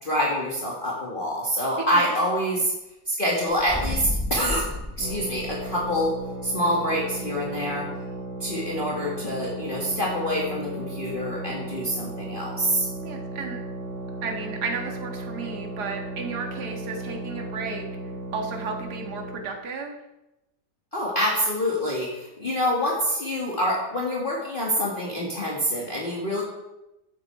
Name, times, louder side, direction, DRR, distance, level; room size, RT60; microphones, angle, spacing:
voice 1, 0.0-2.7 3.1-4.7 5.0-6.1 6.4-7.9 8.4-12.9 20.9-26.4, equal, 30° left, -4 dB, 2.4 m, -26 dB
sound 1, 3.5-6.0, left 1 dB, 5° left, 0.9 m, -31 dB
sound 2, 5.0-19.5, right 2 dB, 50° left, 4.1 m, -35 dB
voice 2, 13.0-13.6 14.2-17.9 18.3-20.0, right 4 dB, 65° right, 2 dB, 2.2 m, -33 dB
15.0 x 10.5 x 4.8 m, 0.95 s
omnidirectional pair, 1.9 m